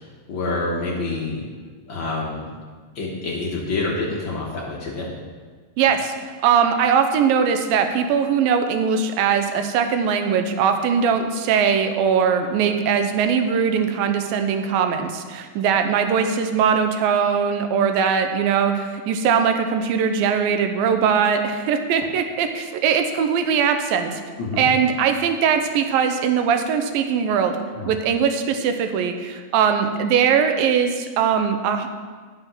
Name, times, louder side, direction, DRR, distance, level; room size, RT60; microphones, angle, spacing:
voice 1, 0.3-1.4 1.9-2.5 2.9-5.1 24.4-24.7 27.7-27.9, left 3 dB, 80° left, -3 dB, 1.0 m, -27 dB
voice 2, 5.8-24.2 24.6-27.6 27.9-31.9, right 7 dB, 90° right, 7 dB, 2.5 m, -20 dB
10.5 x 6.9 x 6.0 m, 1.5 s
omnidirectional pair, 4.0 m